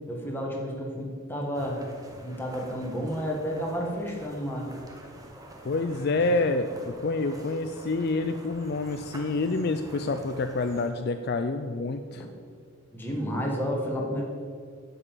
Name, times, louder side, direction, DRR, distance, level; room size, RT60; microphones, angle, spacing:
voice 1, 0.1-1.8 2.2-4.7 12.1-12.3 12.9-14.2, equal, 10° left, -1 dB, 1.5 m, -31 dB
sound 1, 1.5-10.9, right 1 dB, 15° right, 1.1 m, -47 dB
voice 2, 5.6-12.3, left 3 dB, 45° left, 8 dB, 0.4 m, -28 dB
9.6 x 5.5 x 7.4 m, 2.1 s
head